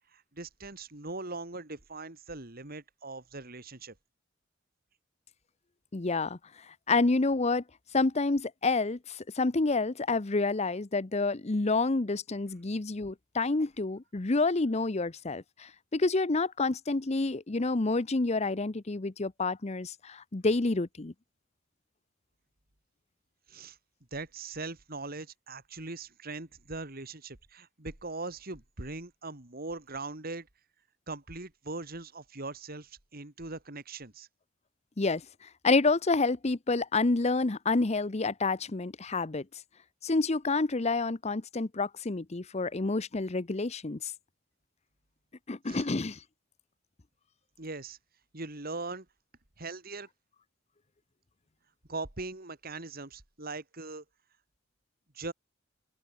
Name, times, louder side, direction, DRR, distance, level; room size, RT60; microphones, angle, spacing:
voice 1, 0.1-3.9 23.5-23.8 24.1-30.5 31.1-34.3 45.7-45.8 47.6-48.0 48.3-49.1 49.6-50.1 51.9-54.0 55.1-55.3, right 3 dB, 50° right, 2.7 m, -40 dB
voice 2, 5.9-6.4 6.9-7.6 7.9-21.1 35.0-35.2 35.6-39.4 40.0-44.1 45.5-46.2, left 3 dB, 35° left, 0.8 m, -28 dB
open air
head